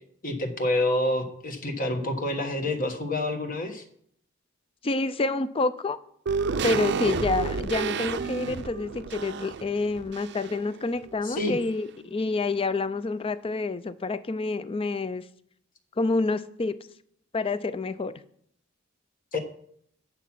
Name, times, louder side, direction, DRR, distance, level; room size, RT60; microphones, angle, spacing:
voice 1, 0.2-3.8 11.2-11.5 19.3-19.4, left 1 dB, 45° left, 1.3 m, -27 dB
voice 2, 4.8-6.0 6.6-15.2 16.0-16.8 17.3-18.2, left 3 dB, 30° left, 0.5 m, -28 dB
sound 1, 6.3-10.7 11.0-11.1, right 5 dB, 60° right, 0.5 m, -30 dB
8.9 x 7.2 x 5.9 m
head